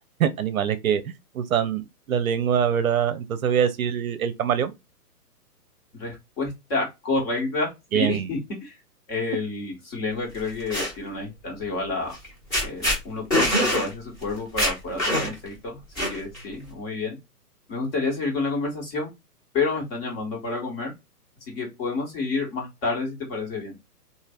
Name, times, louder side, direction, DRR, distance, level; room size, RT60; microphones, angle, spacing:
voice 1, 0.2-4.7 7.9-8.3, right 8 dB, 60° right, 0.6 m, -24 dB
voice 2, 5.9-8.8 9.1-12.1 12.6-17.2 17.7-19.1 19.5-20.9 21.5-23.7, left 3 dB, 40° left, 1.6 m, -29 dB
sound 1, 10.4-10.9 12.1-12.3 12.5-13.0 13.3-13.9 14.2-14.3 14.6-15.5 16.0-16.4, equal, 15° left, 1.3 m, -23 dB
3.2 x 2.6 x 2.4 m
hypercardioid pair, 135°, 48 cm